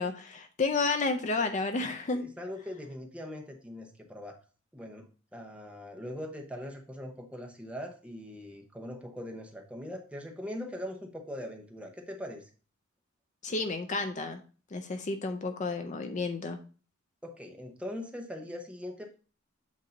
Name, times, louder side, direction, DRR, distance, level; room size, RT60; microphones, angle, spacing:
voice 1, 0.0-2.2 13.4-14.4 14.7-16.6, left 3 dB, 35° left, 6 dB, 0.5 m, -31 dB
voice 2, 2.1-4.4 4.7-5.1 5.3-12.5 17.2-19.1, left 1 dB, 5° right, 2 dB, 0.9 m, -41 dB
8.2 x 2.7 x 5.0 m, 0.37 s
head